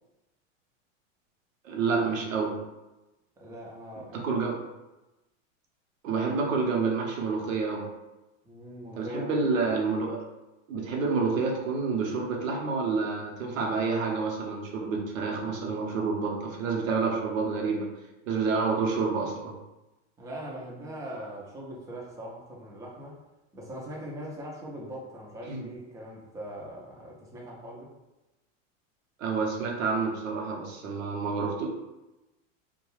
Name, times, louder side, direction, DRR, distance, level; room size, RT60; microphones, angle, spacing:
voice 1, 1.6-2.5 4.1-4.5 6.0-7.9 9.0-10.2 10.7-17.9 18.3-19.6 25.4-25.7 29.2-31.7, right 4 dB, 85° right, 0 dB, 0.8 m, -28 dB
voice 2, 3.4-4.7 8.4-9.8 20.2-23.2 23.5-27.9, right 1 dB, 10° right, -4 dB, 0.4 m, -41 dB
2.3 x 2.2 x 3.1 m, 1.0 s
supercardioid pair, 125°, 39 cm